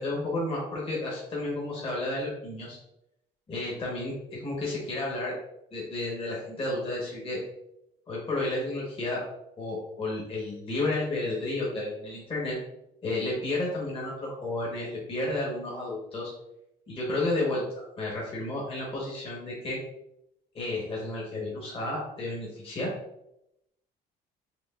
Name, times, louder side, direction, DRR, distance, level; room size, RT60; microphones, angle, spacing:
voice 1, 0.0-2.8 3.5-5.3 5.7-7.4 8.1-9.2 9.6-12.6 13.0-16.3 16.9-19.8 20.5-22.9, left 2 dB, 35° left, -5 dB, 1.3 m, -32 dB
5.1 x 3.0 x 2.5 m, 0.83 s
cardioid pair, 110°, 17 cm